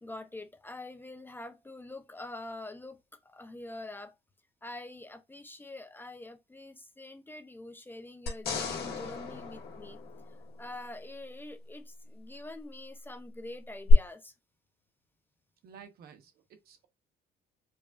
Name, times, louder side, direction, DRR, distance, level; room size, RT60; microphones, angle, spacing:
voice 1, 0.0-4.1 4.6-10.0 10.3-14.3, left 2 dB, 10° left, 0.5 m, -45 dB
sound 1, 8.3-10.8 13.9-14.0, left 8 dB, 65° left, 1.7 m, -34 dB
voice 2, 15.6-16.9, right 7 dB, 65° right, 1.0 m, -53 dB
4.9 x 2.5 x 2.4 m
cardioid pair, 110°, 17 cm